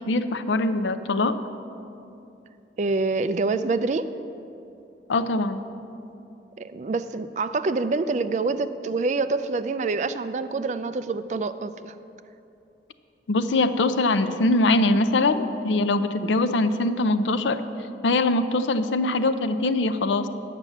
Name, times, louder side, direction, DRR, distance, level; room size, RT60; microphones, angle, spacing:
voice 1, 0.0-1.4 5.1-5.6 13.3-17.6 18.0-20.3, left 2 dB, 85° left, 10 dB, 0.5 m, -22 dB
voice 2, 2.8-4.1 6.6-11.9, right 3 dB, 40° right, 11 dB, 0.3 m, -26 dB
10.0 x 5.9 x 7.8 m, 2.8 s
head